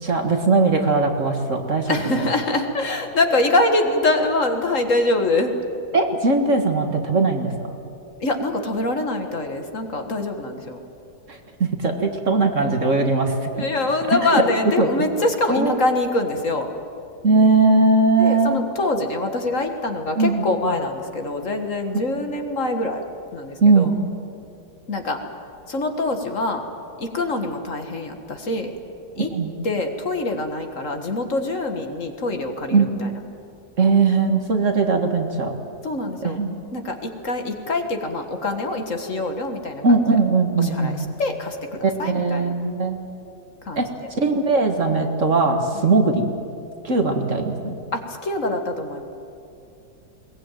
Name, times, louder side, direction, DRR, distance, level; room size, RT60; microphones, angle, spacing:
voice 1, 0.0-2.0 5.9-7.8 11.3-13.5 14.0-14.4 14.8-14.9 15.5-15.7 17.2-18.6 20.2-20.4 23.6-23.9 29.2-29.5 32.7-32.9 33.8-35.5 36.2-36.6 39.8-41.0 41.8-43.0 43.8-46.2 46.8-47.7, right 3 dB, 45° right, 4 dB, 2.0 m, -19 dB
voice 2, 1.9-5.5 8.2-10.8 13.5-16.7 18.2-23.0 23.3-23.9 24.9-25.2 25.7-26.6 27.0-28.7 29.2-29.3 29.6-33.2 35.8-36.4 36.7-40.0 40.6-42.5 43.7-43.9 45.7-45.9 47.9-49.0, left 2 dB, 45° left, 5 dB, 1.9 m, -24 dB
21.5 x 19.5 x 9.1 m, 2.6 s
omnidirectional pair, 1.9 m